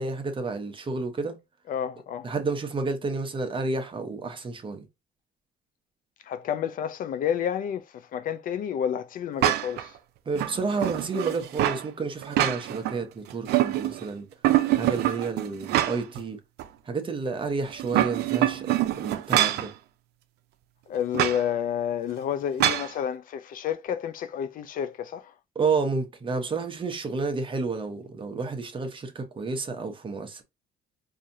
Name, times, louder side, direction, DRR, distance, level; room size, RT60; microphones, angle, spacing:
voice 1, 0.0-1.4 2.2-4.8 10.3-14.3 14.8-16.4 16.9-19.7 25.5-30.4, right 4 dB, 30° right, 0.9 m, -30 dB
voice 2, 1.7-2.3 6.2-10.0 20.9-25.3, left 9 dB, 55° left, 0.4 m, -30 dB
sound 1, 9.4-9.9 10.4-11.8 12.2-13.0 13.3-14.1 14.4-16.2 16.6-16.7 17.7-19.7 21.1-21.4 22.6-22.9, right 13 dB, 80° right, 0.5 m, -25 dB
4.7 x 2.7 x 2.7 m
cardioid pair, 110°, 17 cm